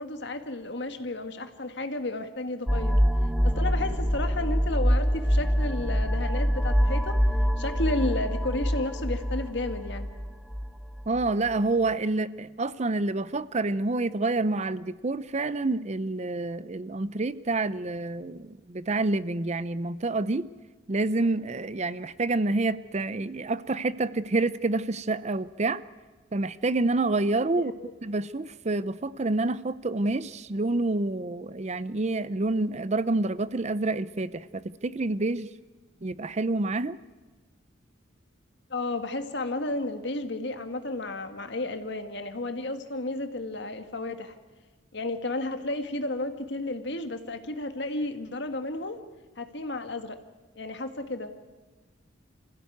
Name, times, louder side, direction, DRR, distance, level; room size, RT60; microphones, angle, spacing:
voice 1, 0.0-3.0 3.4-7.2 7.6-10.1 27.5-27.9 38.7-44.4 44.9-49.0 49.4-50.2 50.6-51.3, left 2 dB, 65° left, 7 dB, 1.9 m, -32 dB
sound 1, 2.7-11.3, equal, ahead, 1.1 m, -25 dB
voice 2, 11.1-20.4 20.9-25.8 26.3-27.7 28.0-35.5 36.0-37.0, right 2 dB, 35° right, 16 dB, 0.6 m, -28 dB
26.0 x 16.0 x 9.3 m, 1.3 s
head